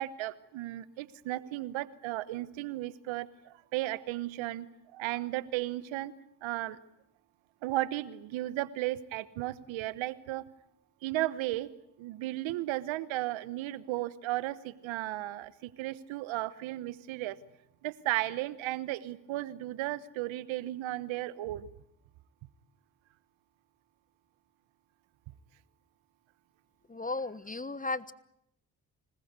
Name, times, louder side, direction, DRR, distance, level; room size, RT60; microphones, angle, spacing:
voice 1, 0.0-6.1 6.4-6.8 7.6-10.4 11.0-11.7 12.0-17.4 17.8-21.7, right 16 dB, 85° right, 18 dB, 1.1 m, -35 dB
voice 2, 26.9-28.1, left 3 dB, 15° left, 17 dB, 1.3 m, -35 dB
26.0 x 20.0 x 9.5 m, 0.78 s
supercardioid pair, 50°, 46 cm